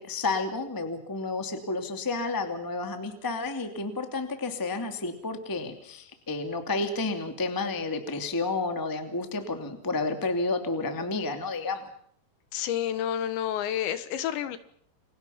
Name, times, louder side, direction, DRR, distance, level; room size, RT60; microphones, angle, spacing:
voice 1, 0.0-11.9, left 3 dB, 10° left, 6 dB, 1.1 m, -31 dB
voice 2, 12.5-14.6, left 10 dB, 75° left, 13 dB, 3.4 m, -29 dB
29.5 x 23.5 x 5.8 m, 0.65 s
omnidirectional pair, 5.5 m